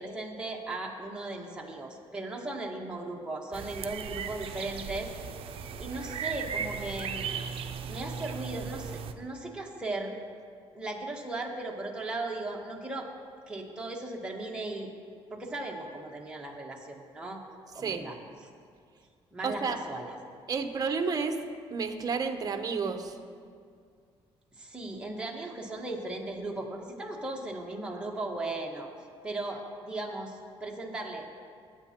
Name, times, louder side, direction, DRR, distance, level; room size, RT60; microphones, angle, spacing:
voice 1, 0.0-5.1 5.8-10.2 10.7-13.1 13.5-14.9 15.3-17.4 17.7-18.5 19.3-20.1 24.6-28.9 29.2-31.3, right 2 dB, 10° right, -1 dB, 1.3 m, -37 dB
sound 1, 3.5-9.1, right 7 dB, 60° right, 0.5 m, -37 dB
voice 2, 19.4-19.8 20.5-21.3 21.7-23.2, right 5 dB, 35° right, 6 dB, 0.8 m, -31 dB
17.0 x 8.5 x 2.9 m, 2.2 s
cardioid pair, 125°, 11 cm